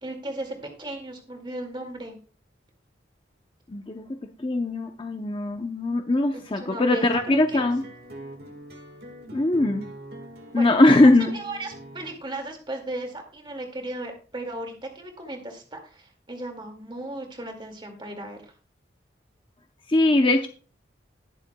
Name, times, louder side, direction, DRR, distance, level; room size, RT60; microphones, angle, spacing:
voice 1, 0.0-2.2 6.3-7.7 10.5-10.7 11.0-18.5, right 1 dB, 25° right, 3 dB, 2.1 m, -36 dB
voice 2, 3.7-4.0 4.4-7.8 9.3-9.8 10.5-11.3 19.9-20.5, left 2 dB, 30° left, 5 dB, 0.6 m, -20 dB
sound 1, 7.1-12.2, right 1 dB, 55° right, 1.7 m, -43 dB
20.0 x 6.8 x 2.2 m, 0.37 s
head